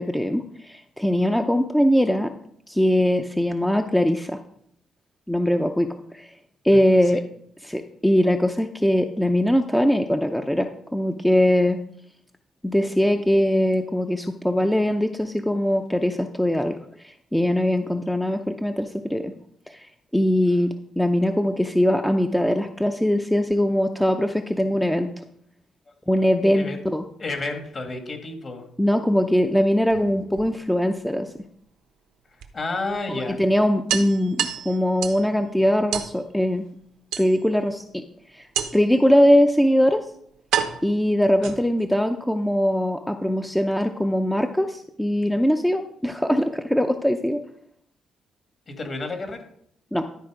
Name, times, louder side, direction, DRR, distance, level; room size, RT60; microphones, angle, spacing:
voice 1, 0.0-2.3 2.7-4.4 5.3-6.3 6.6-7.2 7.6-11.8 12.6-16.8 17.0-19.3 19.7-19.9 20.1-25.2 26.1-27.0 28.8-31.3 33.1-36.7 37.2-38.0 38.3-38.5 38.7-40.1 40.8-47.4 49.9-50.1, equal, 5° left, 6 dB, 0.6 m, -21 dB
voice 2, 6.7-7.2 25.9-26.0 26.5-26.8 27.2-28.6 32.5-33.4 41.4-41.5 48.7-49.4, left 3 dB, 40° left, 5 dB, 1.9 m, -31 dB
sound 1, 29.8-30.9 32.4-32.5 32.9-33.0 33.3-33.4 33.9-35.3 35.9-36.2 37.1-37.7 38.6-39.0 39.8-39.9 40.5-41.9, right 9 dB, 90° right, 0.9 m, -29 dB
12.0 x 4.4 x 4.9 m, 0.68 s
cardioid pair, 90°, 0 cm